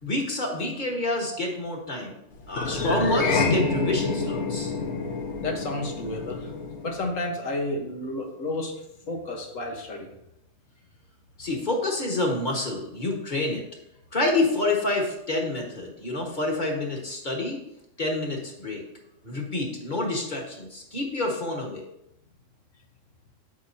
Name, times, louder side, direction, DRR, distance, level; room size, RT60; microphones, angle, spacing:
voice 1, 0.0-2.2 2.5-4.7 11.4-13.6 14.1-17.6 18.0-18.8 19.2-21.9, left 2 dB, 40° left, 0 dB, 1.7 m, -28 dB
sound 1, 2.5-7.1, left 3 dB, 65° left, 1.3 m, -27 dB
voice 2, 5.4-6.5 6.8-8.7 9.1-10.1, left 2 dB, 90° left, 1 dB, 1.7 m, -31 dB
8.4 x 7.9 x 2.8 m, 0.81 s
omnidirectional pair, 1.3 m